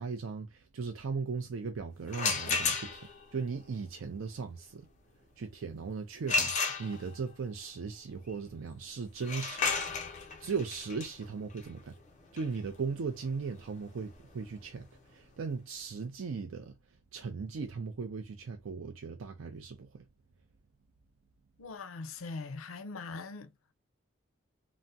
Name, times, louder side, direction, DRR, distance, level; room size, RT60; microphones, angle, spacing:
voice 1, 0.0-4.9 5.4-9.7 10.0-12.0 12.3-16.8 17.1-20.0, right 5 dB, 80° right, 0.4 m, -38 dB
sound 1, 2.1-3.2 6.3-7.3 9.2-14.8, left 4 dB, 35° left, 0.6 m, -34 dB
voice 2, 21.6-23.5, left 4 dB, 90° left, 0.5 m, -41 dB
3.4 x 2.0 x 2.6 m
head